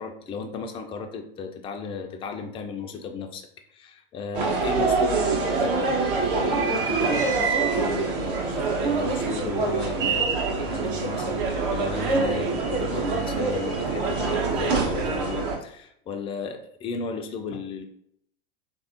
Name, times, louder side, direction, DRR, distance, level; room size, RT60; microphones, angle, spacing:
voice 1, 0.0-3.4 3.7-17.9, left 5 dB, 20° left, 4 dB, 0.3 m, -34 dB
sound 1, 4.3-15.6, right 4 dB, 60° right, 0.8 m, -25 dB
3.4 x 2.6 x 2.4 m, 0.70 s
hypercardioid pair, 90°, 30 cm